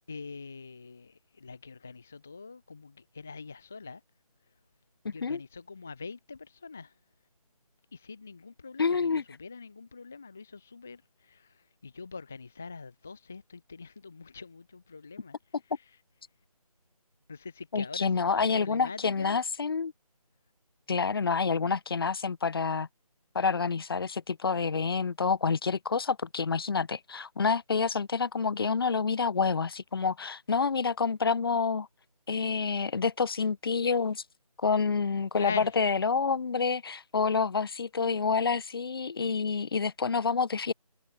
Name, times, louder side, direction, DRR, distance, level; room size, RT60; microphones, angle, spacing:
voice 1, 0.1-4.0 4.4-4.5 5.1-7.0 7.9-16.0 17.3-19.4 35.3-35.8, left 4 dB, ahead, 0.5 m, -43 dB
voice 2, 5.0-5.4 8.8-9.2 17.7-19.9 20.9-22.9 23.3-31.9 32.3-34.2 34.6-35.5 35.8-40.7, left 5 dB, 40° left, 1.5 m, -28 dB
figure-of-eight pair, 160°, 20 cm